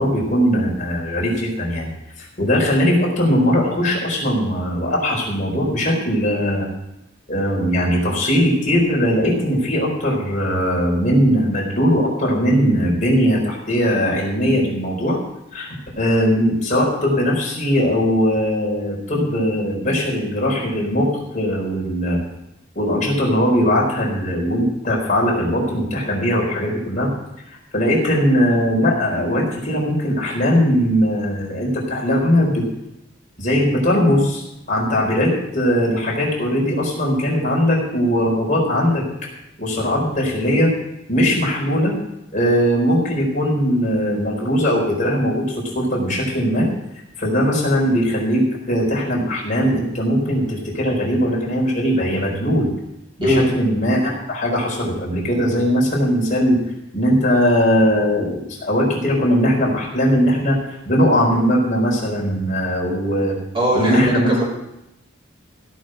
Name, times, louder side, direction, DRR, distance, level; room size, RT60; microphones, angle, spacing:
voice 1, 0.0-1.9 2.2-6.7 7.3-15.2 15.5-21.1 21.3-22.2 22.7-27.1 27.7-32.6 33.4-39.0 39.6-40.7 41.1-42.0 42.3-46.7 47.2-52.7 53.2-56.6 56.9-60.6 60.8-63.4 63.7-64.3, equal, 40° left, -3 dB, 4.2 m, -19 dB
voice 2, 63.5-64.4, equal, 25° right, -5 dB, 4.1 m, -19 dB
16.0 x 6.3 x 7.7 m, 0.88 s
head